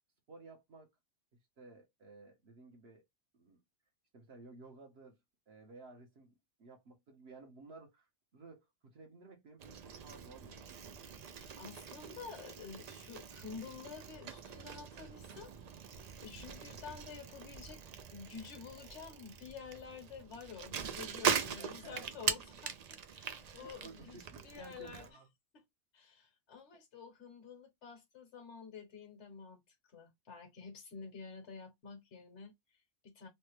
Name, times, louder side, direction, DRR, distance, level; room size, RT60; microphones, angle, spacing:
voice 1, 0.3-0.9 1.6-3.0 3.3-3.6 4.1-5.2 5.5-6.3 6.6-8.1 8.3-10.8 21.3-22.1 23.2-25.3, right 3 dB, 60° right, 1.0 m, -55 dB
Bicycle, 9.6-25.1, right 7 dB, 80° right, 0.3 m, -41 dB
voice 2, 11.3-15.5 16.2-17.8 18.1-25.1 25.5-25.6 25.9-29.6 29.9-33.3, left 5 dB, 70° left, 1.2 m, -50 dB
3.2 x 2.1 x 3.0 m
omnidirectional pair, 1.2 m